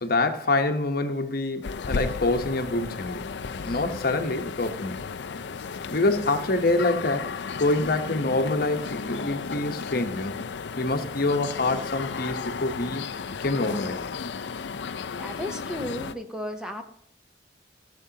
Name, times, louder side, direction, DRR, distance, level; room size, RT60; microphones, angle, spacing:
voice 1, 0.0-3.3 3.6-5.0 5.9-10.4 10.8-13.0 13.4-14.0, left 2 dB, 60° left, 7 dB, 0.9 m, -26 dB
sound 1, 1.6-16.2, left 5 dB, 80° left, 0.5 m, -34 dB
voice 2, 15.2-16.8, equal, 5° right, 5 dB, 0.8 m, -34 dB
15.0 x 6.8 x 2.8 m, 0.71 s
head